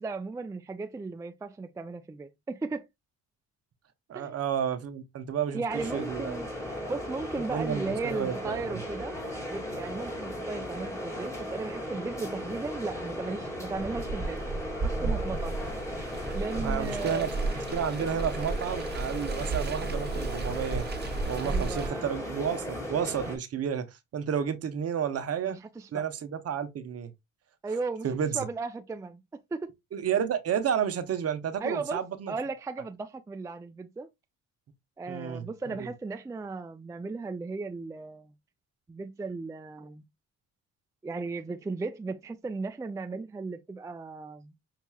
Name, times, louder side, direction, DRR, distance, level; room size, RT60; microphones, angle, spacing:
voice 1, 0.0-2.9 4.1-4.3 5.5-6.5 6.9-9.2 9.5-14.4 14.8-15.6 16.3-17.3 21.4-22.2 25.5-26.0 27.6-28.1 28.3-29.7 31.6-32.0 32.3-34.1 35.0-38.3 38.9-40.0 41.0-44.5, right 3 dB, 10° right, 0.3 m, -36 dB
voice 2, 4.1-6.4 7.5-8.8 16.5-17.3 17.7-20.9 21.3-25.6 25.9-27.1 28.0-28.5 29.9-32.3 35.1-35.9, right 8 dB, 55° right, 0.8 m, -31 dB
sound 1, 5.7-23.4, left 1 dB, 10° left, 2.0 m, -36 dB
Car, 13.7-21.9, right 3 dB, 35° right, 1.4 m, -34 dB
5.7 x 2.9 x 2.3 m
cardioid pair, 90°, 30 cm